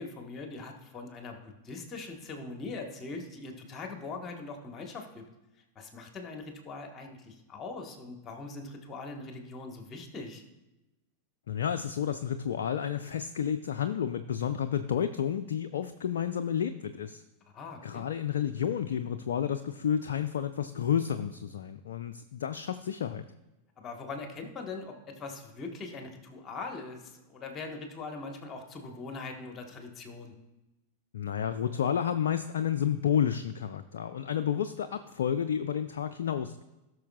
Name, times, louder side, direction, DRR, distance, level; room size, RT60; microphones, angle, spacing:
voice 1, 0.0-5.2 5.7-10.4 17.5-18.0 23.8-30.3, left 3 dB, 25° left, 4 dB, 1.4 m, -41 dB
voice 2, 11.5-17.2 17.8-23.2 31.1-36.6, left 9 dB, 60° left, 8 dB, 0.4 m, -31 dB
17.5 x 6.2 x 2.4 m, 1.0 s
figure-of-eight pair, 90°, 0 cm